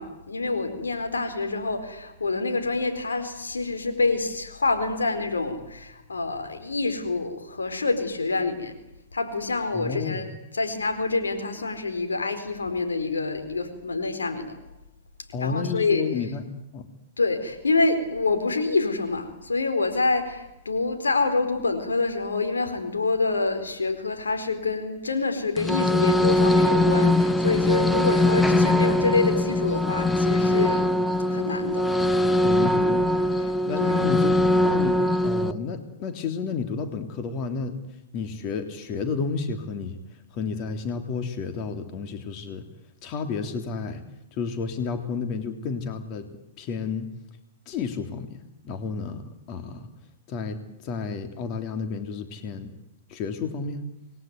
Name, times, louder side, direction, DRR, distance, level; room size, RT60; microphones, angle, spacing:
voice 1, 0.0-8.7 9.1-10.3 10.5-14.5 15.4-16.0 17.2-30.8 31.3-31.9 33.8-33.9, left 3 dB, 90° left, 7 dB, 4.4 m, -26 dB
voice 2, 9.7-10.3 15.3-16.4 16.7-16.9 32.4-33.0 33.6-34.4 34.7-37.8 38.1-40.0 40.3-42.6 43.0-44.0 44.3-47.1 47.7-49.9 50.3-52.7 53.1-53.9, left 5 dB, 45° left, 7 dB, 3.4 m, -31 dB
sound 1, 25.6-35.5, left 1 dB, 5° left, 1.1 m, -21 dB
27.5 x 21.0 x 9.6 m, 0.93 s
hypercardioid pair, 110°, 0 cm